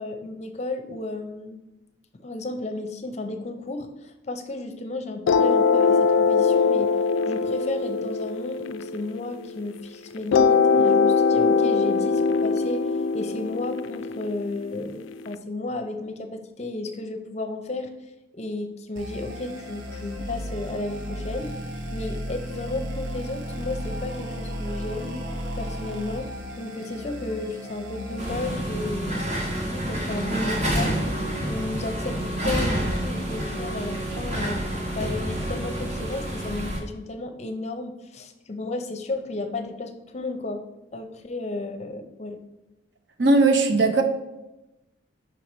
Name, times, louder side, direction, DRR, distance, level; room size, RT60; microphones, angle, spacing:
voice 1, 0.0-1.6 2.2-7.0 7.2-12.9 13.1-17.9 18.3-21.6 21.9-25.2 25.6-26.3 26.6-31.0 31.4-34.6 34.9-40.6 40.9-42.4, left 2 dB, 35° left, 7 dB, 0.6 m, -33 dB
sound 1, 5.3-9.7 10.3-15.3, left 5 dB, 85° left, 0.3 m, -22 dB
sound 2, 19.0-28.6, equal, 85° right, 1.0 m, -34 dB
sound 3, 28.2-36.8, right 1 dB, 35° right, 1.1 m, -28 dB
voice 2, 43.2-44.0, right 3 dB, 65° right, 6 dB, 0.7 m, -18 dB
5.4 x 4.7 x 4.2 m, 0.97 s
head